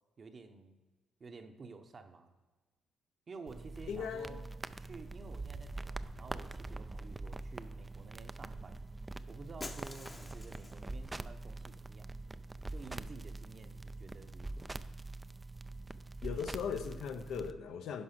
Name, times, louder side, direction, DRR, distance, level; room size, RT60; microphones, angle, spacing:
voice 1, 0.2-0.7 1.2-2.3 3.3-4.4 4.8-8.8 9.3-12.1 12.7-14.7, right 4 dB, 40° right, 6 dB, 0.9 m, -51 dB
sound 1, 3.5-17.5, right 2 dB, 20° right, 0.4 m, -44 dB
voice 2, 3.9-4.5 16.2-18.0, left 7 dB, 75° left, 8 dB, 0.7 m, -39 dB
Shatter, 9.6-10.9, left 2 dB, 20° left, 0.7 m, -47 dB
11.0 x 4.7 x 5.9 m, 1.3 s
cardioid pair, 90°, 0 cm